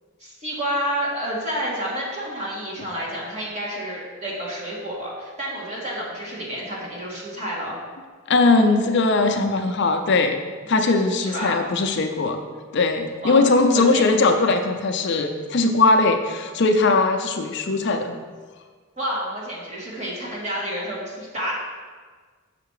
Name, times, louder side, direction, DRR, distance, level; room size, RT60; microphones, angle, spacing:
voice 1, 0.2-7.8 11.2-11.6 13.2-14.0 19.0-21.5, equal, 35° right, -5 dB, 2.0 m, -29 dB
voice 2, 8.3-10.4 10.7-12.4 12.7-18.2, left 3 dB, 55° left, 6 dB, 0.5 m, -20 dB
6.6 x 5.8 x 4.8 m, 1.5 s
head